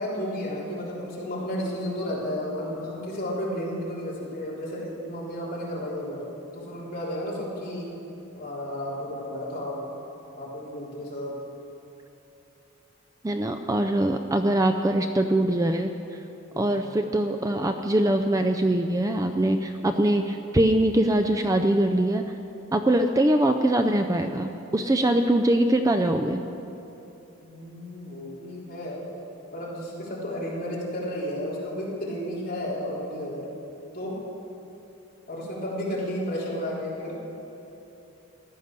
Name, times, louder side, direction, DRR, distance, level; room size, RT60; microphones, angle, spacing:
voice 1, 0.0-6.3 6.5-8.0 8.3-9.8 10.3-11.3 16.5-17.0 27.4-29.0 29.5-33.5 33.9-34.2 35.3-37.1, equal, 40° left, -6 dB, 3.7 m, -32 dB
voice 2, 13.2-16.2 16.6-22.2 22.7-26.4, right 1 dB, 15° right, 6 dB, 0.4 m, -23 dB
15.0 x 11.0 x 6.7 m, 2.9 s
head